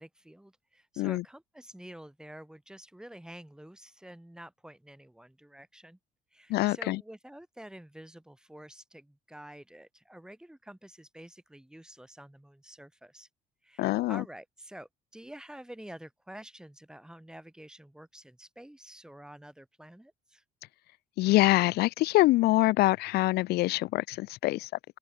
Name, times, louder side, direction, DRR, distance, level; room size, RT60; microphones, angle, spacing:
voice 1, 0.0-6.0 6.3-13.3 13.6-20.4, right 1 dB, 5° right, 6.8 m, -49 dB
voice 2, 6.5-7.0 13.8-14.2 21.2-24.7, left 18 dB, 75° left, 0.4 m, -25 dB
open air
cardioid pair, 110°, 17 cm